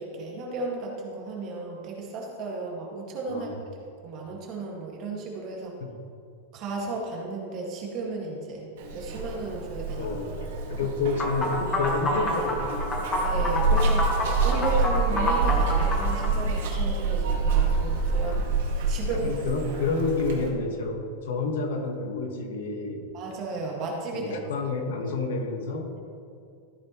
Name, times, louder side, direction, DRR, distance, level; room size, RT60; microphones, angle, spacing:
voice 1, 0.0-3.5 4.0-5.7 6.5-8.7 8.9-10.1 13.2-14.1 14.4-18.4 18.7-19.3 23.1-24.3, right 3 dB, 30° right, -2 dB, 1.9 m, -34 dB
voice 2, 3.3-3.6 5.8-5.9 10.0-10.3 10.7-13.1 14.1-14.2 18.2-18.5 19.1-23.1 24.1-25.9, left 3 dB, 65° left, 3 dB, 1.5 m, -29 dB
Zipper (clothing), 8.8-20.5, right 4 dB, 60° right, 2.1 m, -27 dB
sound 1, 11.2-16.3, left 2 dB, 10° left, 1.2 m, -28 dB
14.0 x 9.3 x 3.1 m, 2.4 s
supercardioid pair, 175°, 0 cm